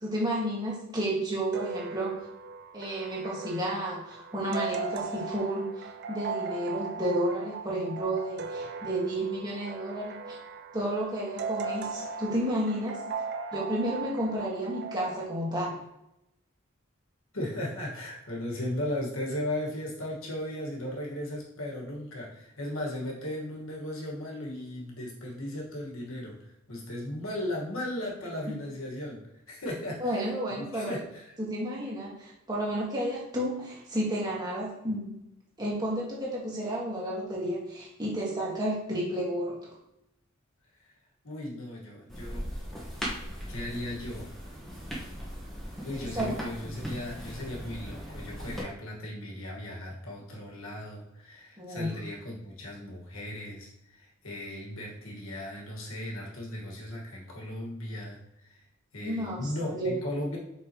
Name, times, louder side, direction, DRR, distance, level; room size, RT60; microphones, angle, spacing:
voice 1, 0.0-2.1 2.7-10.4 10.7-13.0 13.5-15.8 30.0-30.9 31.4-35.1 35.6-39.7 45.9-46.3 51.6-51.9 59.0-59.9, right 1 dB, 20° right, -5 dB, 1.8 m, -31 dB
sound 1, 1.5-15.2, right 4 dB, 50° right, 0.4 m, -38 dB
voice 2, 17.3-29.2 29.5-30.2 30.6-31.3 41.2-42.5 42.8-42.9 43.5-44.3 45.8-58.2 58.5-58.6 58.9-60.4, left 1 dB, 75° left, -2 dB, 1.7 m, -36 dB
sound 2, 42.1-48.6, equal, ahead, 1.4 m, -38 dB
5.8 x 5.3 x 3.0 m, 0.86 s
head